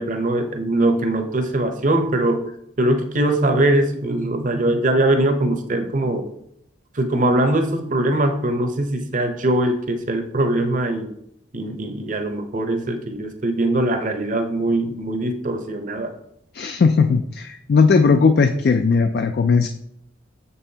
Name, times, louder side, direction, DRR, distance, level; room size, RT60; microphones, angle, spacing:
voice 1, 0.0-2.4 2.8-6.3 6.9-11.1 11.5-16.1, right 1 dB, 40° right, 5 dB, 0.7 m, -21 dB
voice 2, 16.5-19.7, left 5 dB, 50° left, 7 dB, 0.3 m, -17 dB
7.1 x 5.5 x 2.8 m, 0.74 s
head